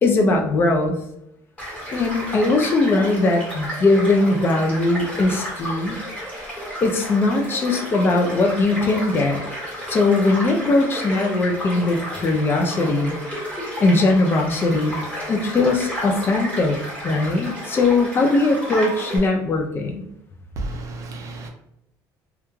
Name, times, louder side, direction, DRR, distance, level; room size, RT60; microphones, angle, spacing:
voice 1, 0.0-1.0 1.9-6.0 6.8-9.4 9.9-13.2 13.8-15.0 15.3-16.8 17.0-20.0, left 2 dB, 30° left, 3 dB, 0.3 m, -20 dB
Child speech kid speaking / Stream / Car passing by, 1.6-19.2, equal, 15° left, 1.2 m, -32 dB
voice 2, 20.6-21.5, right 2 dB, 45° right, 3 dB, 0.5 m, -31 dB
2.3 x 2.2 x 3.0 m, 0.79 s
cardioid pair, 145°, 8 cm